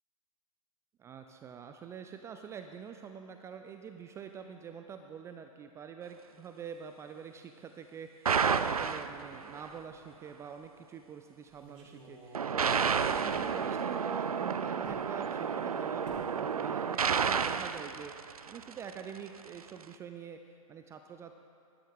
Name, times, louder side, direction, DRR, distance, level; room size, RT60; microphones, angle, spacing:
voice 1, 1.0-21.4, right 7 dB, 15° right, 6 dB, 0.3 m, -46 dB
sound 1, 8.2-9.7 12.3-18.9, right 6 dB, 90° right, 0.4 m, -31 dB
sound 2, 11.5-13.5 14.8-15.1 16.0-16.3 16.6-17.0 17.2-17.4, right 3 dB, 55° right, 3.1 m, -52 dB
12.5 x 11.5 x 3.7 m, 2.5 s
hypercardioid pair, 115°, 18 cm